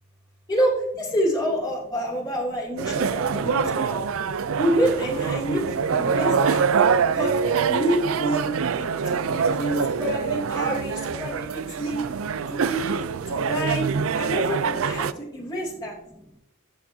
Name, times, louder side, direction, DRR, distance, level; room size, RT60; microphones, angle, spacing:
voice 1, 0.5-4.1 4.6-5.6 5.9-6.6 7.1-8.5 8.8-12.1 12.5-13.0 13.3-16.0, right 1 dB, 20° left, -4 dB, 2.7 m, -27 dB
sound 1, 2.8-15.1, right 6 dB, 70° right, 0.4 m, -25 dB
voice 2, 11.3-12.1 15.0-16.4, equal, 10° right, 0 dB, 0.9 m, -49 dB
13.0 x 7.1 x 2.8 m, 0.86 s
head